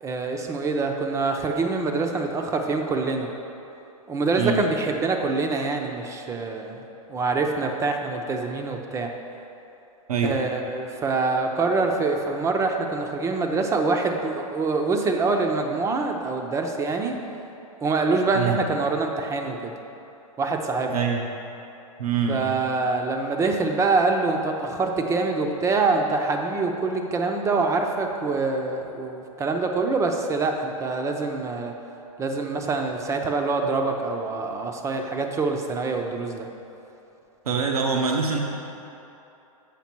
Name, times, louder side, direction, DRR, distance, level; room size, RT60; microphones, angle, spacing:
voice 1, 0.0-3.3 4.1-6.8 7.1-9.1 10.2-17.1 17.8-19.7 20.4-20.9 22.3-31.7 32.2-36.5, right 3 dB, 15° right, 4 dB, 0.5 m, -25 dB
voice 2, 20.9-21.2 22.0-22.5 37.4-38.4, right 5 dB, 85° right, 1 dB, 0.8 m, -24 dB
7.3 x 5.0 x 4.5 m, 2.9 s
hypercardioid pair, 125°, 18 cm